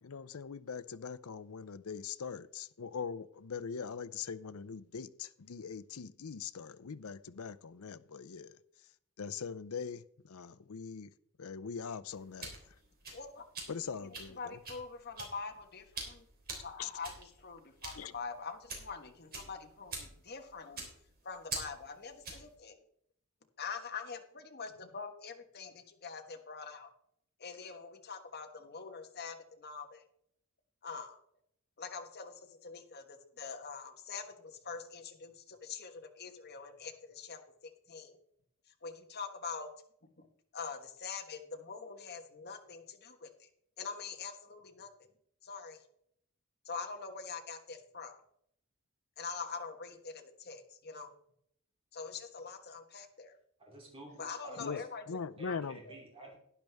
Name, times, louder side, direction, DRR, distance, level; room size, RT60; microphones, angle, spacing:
voice 1, 0.0-8.5 9.2-11.1 11.4-12.5 13.7-14.6 16.8-16.9 18.0-18.1 54.6-54.8 55.1-55.8, left 6 dB, 75° left, 0.6 m, -42 dB
sound 1, 12.1-22.5, right 3 dB, 45° right, 3.4 m, -46 dB
voice 2, 13.1-13.4 14.4-16.2 16.6-20.9 21.2-22.8 23.6-26.9 27.4-30.0 30.8-31.2 31.8-32.3 32.6-37.4 37.9-38.2 38.8-39.7 40.2-40.3 40.5-43.5 43.8-44.9 45.4-45.8 46.6-48.2 49.2-51.1 51.9-53.3 54.2-55.0 55.4-55.6 55.9-56.0, left 5 dB, 45° left, 1.4 m, -44 dB
voice 3, 53.6-54.8 55.4-56.4, right 1 dB, 25° right, 3.0 m, -51 dB
11.5 x 10.5 x 3.5 m
head